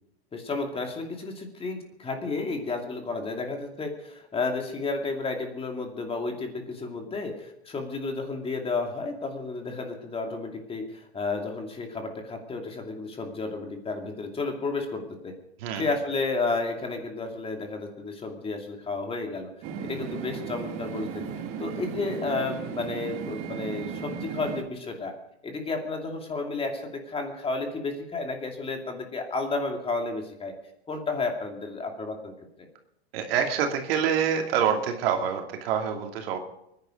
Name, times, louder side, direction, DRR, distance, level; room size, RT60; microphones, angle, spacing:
voice 1, 0.3-15.3 15.7-19.5 19.8-21.3 21.6-25.1 25.4-30.5 30.9-32.3, left 3 dB, 15° left, 3 dB, 2.6 m, -32 dB
sound 1, 19.6-24.6, right 7 dB, 40° right, 2.0 m, -35 dB
voice 2, 33.1-36.4, right 8 dB, 65° right, 3 dB, 2.8 m, -26 dB
23.0 x 10.5 x 5.2 m, 0.79 s
hypercardioid pair, 115°, 32 cm